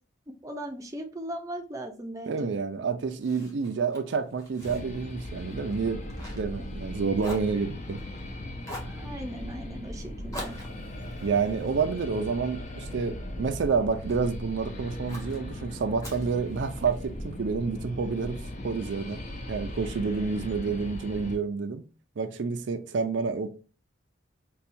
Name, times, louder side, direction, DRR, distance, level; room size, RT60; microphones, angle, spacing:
voice 1, 0.4-2.5 8.8-10.6, right 1 dB, 15° right, 0.5 m, -38 dB
voice 2, 2.3-6.0 6.4-8.0 11.2-19.2 19.5-21.8 22.2-23.5, right 5 dB, 70° right, 0.4 m, -29 dB
Fire, 3.2-6.9 7.2-8.2 8.6-9.0 10.3-12.7 13.2-14.4 15.1-15.4 16.0-17.1, left 1 dB, 20° left, 1.0 m, -45 dB
sound 1, 4.6-21.4, left 1 dB, 40° left, 0.6 m, -38 dB
5.5 x 2.3 x 2.6 m
head